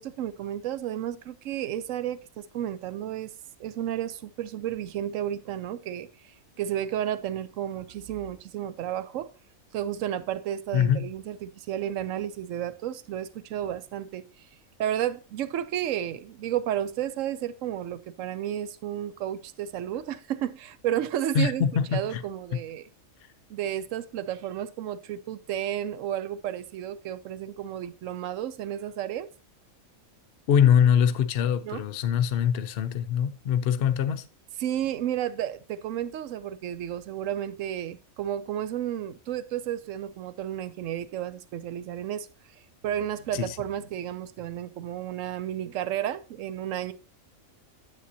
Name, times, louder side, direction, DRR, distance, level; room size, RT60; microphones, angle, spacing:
voice 1, 0.0-3.3 3.6-9.3 9.7-14.5 14.8-22.9 23.5-29.3 31.6-31.8 34.6-42.3 42.8-46.9, right 11 dB, 70° right, 0.9 m, -32 dB
voice 2, 10.7-11.1 21.3-22.2 30.5-34.2 43.3-43.5, left 8 dB, 60° left, 0.7 m, -23 dB
9.9 x 7.4 x 2.7 m
omnidirectional pair, 1.5 m